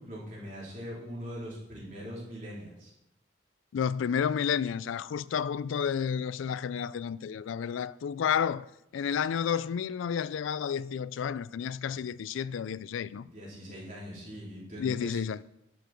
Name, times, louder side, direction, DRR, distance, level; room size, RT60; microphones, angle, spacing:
voice 1, 0.0-2.9 13.1-15.2, equal, 40° right, 4.1 m, -42 dB
voice 2, 3.7-13.3 14.8-15.4, left 7 dB, 85° left, 0.3 m, -31 dB
11.5 x 7.2 x 4.5 m
head